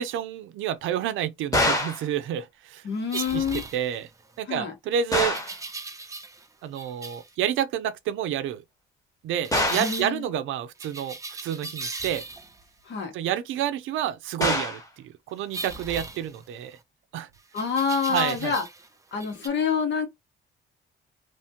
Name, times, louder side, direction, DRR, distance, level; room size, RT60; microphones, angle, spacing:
voice 1, 0.0-2.9 3.1-3.4 3.7-4.1 4.4-5.4 6.6-8.6 9.2-12.2 13.1-16.8 17.1-17.3 18.1-18.6, right 10 dB, 80° right, 0.5 m, -29 dB
sound 1, 1.5-2.1 5.1-5.6 9.5-10.0 14.4-14.9, left 1 dB, 15° left, 1.1 m, -25 dB
voice 2, 2.8-3.7 4.5-4.7 9.7-10.3 12.8-13.1 17.5-18.6 19.1-20.1, left 6 dB, 65° left, 1.2 m, -27 dB
sound 2, 3.1-4.3 5.1-6.5 6.8-7.3 9.4-10.1 10.8-12.6 15.5-16.8 17.6-18.9 19.2-19.5, right 3 dB, 15° right, 0.5 m, -38 dB
3.1 x 2.1 x 2.8 m
cardioid pair, 90°, 20 cm